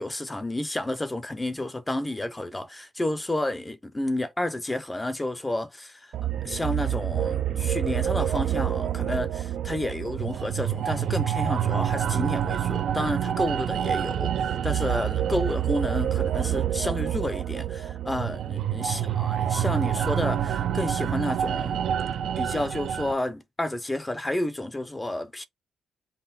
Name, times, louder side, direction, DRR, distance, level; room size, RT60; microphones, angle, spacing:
voice 1, 0.0-6.1 6.4-21.8 22.4-25.4, left 1 dB, 10° left, 0.5 m, -31 dB
sound 1, 6.1-23.1, right 10 dB, 70° right, 0.4 m, -27 dB
5.5 x 2.1 x 4.1 m
cardioid pair, 145°, 0 cm